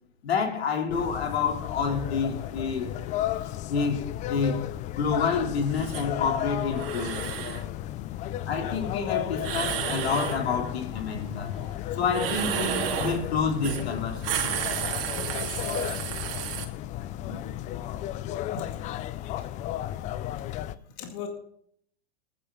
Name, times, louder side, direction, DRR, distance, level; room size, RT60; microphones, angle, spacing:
voice 1, 0.2-2.9 3.7-4.6 4.9-7.3 8.5-11.6 12.0-14.7, left 5 dB, 75° left, 3.1 m, -28 dB
sound 1, 0.9-20.7, left 13 dB, 25° left, 0.4 m, -34 dB
sound 2, 5.7-6.1 6.7-7.6 9.4-10.4 12.1-13.2 13.6-13.8 14.1-16.6, right 9 dB, 60° right, 2.7 m, -32 dB
voice 2, 15.1-15.9 17.2-17.5 18.5-19.1 19.4-19.5 20.9-21.3, left 4 dB, 40° left, 2.2 m, -39 dB
19.0 x 10.0 x 3.8 m
hypercardioid pair, 120°, 31 cm